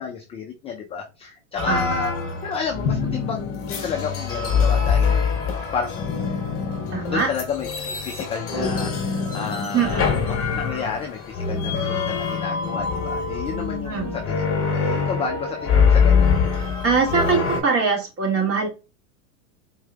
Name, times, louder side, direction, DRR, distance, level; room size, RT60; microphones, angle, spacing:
voice 1, 0.0-2.1 2.4-5.5 5.7-6.2 7.1-16.3, left 5 dB, 15° left, 1 dB, 0.4 m, -31 dB
sound 1, 1.6-17.6, left 5 dB, 30° left, 1.5 m, -24 dB
Drum, 2.9-4.6, left 8 dB, 55° left, 1.2 m, -30 dB
voice 2, 6.9-7.3 9.7-10.1 13.9-14.2 16.8-18.7, right 5 dB, 30° right, 1 dB, 2.0 m, -22 dB
4.4 x 3.2 x 2.2 m, 0.28 s
hypercardioid pair, 120°, 44 cm